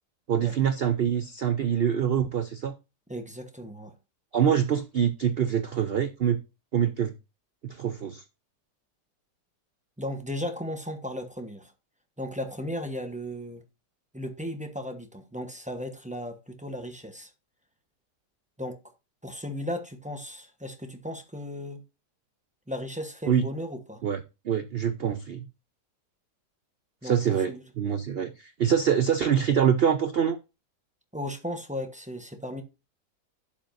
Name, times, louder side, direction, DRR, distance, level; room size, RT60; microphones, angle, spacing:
voice 1, 0.3-2.7 4.3-6.4 6.7-7.1 7.6-8.2 23.3-23.4 24.0-24.2 24.4-25.5 27.0-30.4, right 8 dB, 80° right, 0.5 m, -25 dB
voice 2, 3.1-3.9 10.0-11.7 12.2-13.6 14.1-17.3 18.6-18.8 19.2-21.8 22.7-24.0 27.0-27.6 31.1-32.6, left 1 dB, 5° right, 0.7 m, -36 dB
11.5 x 7.5 x 2.6 m
omnidirectional pair, 1.8 m